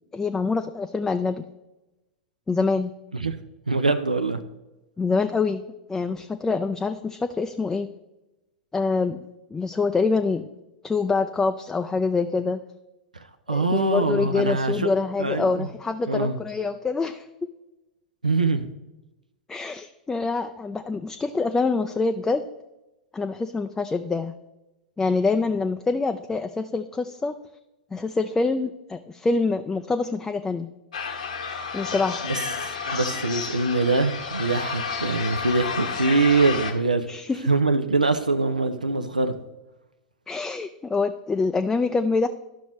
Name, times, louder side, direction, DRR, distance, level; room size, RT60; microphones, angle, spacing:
voice 1, 0.1-1.4 2.5-2.9 5.0-5.6 5.9-7.9 8.7-9.2 9.5-10.5 10.8-12.6 13.5-17.3 19.5-22.4 23.1-24.3 25.0-27.3 27.9-30.7 31.7-32.2 37.1-37.4 40.3-42.3, left 4 dB, 10° left, 7 dB, 0.3 m, -25 dB
voice 2, 3.7-4.4 13.5-14.9 15.2-15.7 16.1-16.4 18.2-18.7 32.3-37.1 37.5-39.4, right 3 dB, 85° right, 8 dB, 0.5 m, -23 dB
sound 1, 30.9-36.7, left 5 dB, 70° left, 1.1 m, -31 dB
11.5 x 6.0 x 3.0 m, 1.0 s
figure-of-eight pair, 95°, 4 cm